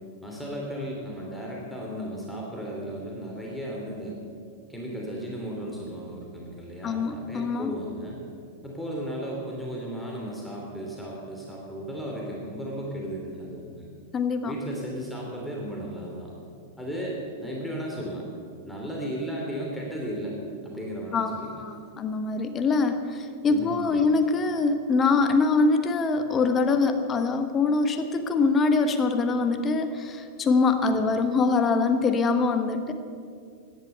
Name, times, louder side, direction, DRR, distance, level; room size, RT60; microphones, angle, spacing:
voice 1, 0.2-4.2 4.7-8.2 8.6-13.9 14.4-16.3 16.8-18.3 18.7-21.6 23.5-24.2 30.9-31.0, equal, 5° left, -3 dB, 2.9 m, -35 dB
voice 2, 6.8-7.7 14.1-14.5 21.1-32.9, left 4 dB, 25° left, 8 dB, 1.3 m, -24 dB
16.5 x 11.5 x 6.8 m, 2.3 s
figure-of-eight pair, 95°, 0 cm